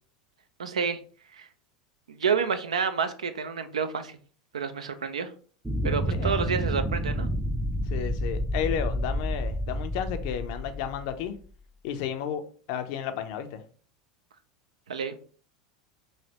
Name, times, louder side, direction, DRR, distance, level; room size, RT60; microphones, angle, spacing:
voice 1, 0.6-1.0 1.3-1.5 2.1-4.2 4.5-5.3 5.8-7.3 14.9-15.2, right 6 dB, 90° right, 0.3 m, -29 dB
sound 1, 5.6-11.4, equal, 10° right, 0.4 m, -29 dB
voice 2, 7.9-11.4 11.8-12.4 12.7-13.6, left 9 dB, 65° left, 0.5 m, -32 dB
3.1 x 2.6 x 2.9 m
hypercardioid pair, 90°, 3 cm